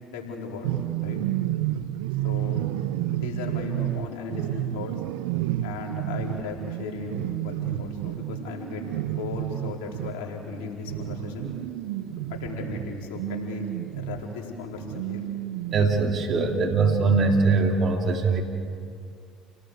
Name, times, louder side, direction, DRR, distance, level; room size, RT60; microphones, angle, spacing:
voice 1, 0.1-0.7 1.0-1.2 2.2-2.6 3.1-4.9 5.6-11.5 12.3-13.6 14.0-15.2, left 4 dB, 75° left, -1 dB, 4.5 m, -36 dB
sound 1, 0.6-14.3 14.7-17.6, right 14 dB, 80° right, 0.6 m, -31 dB
voice 2, 15.7-18.4, right 4 dB, 50° right, 2 dB, 2.9 m, -22 dB
29.5 x 18.5 x 8.1 m, 2.3 s
hypercardioid pair, 70°, 0 cm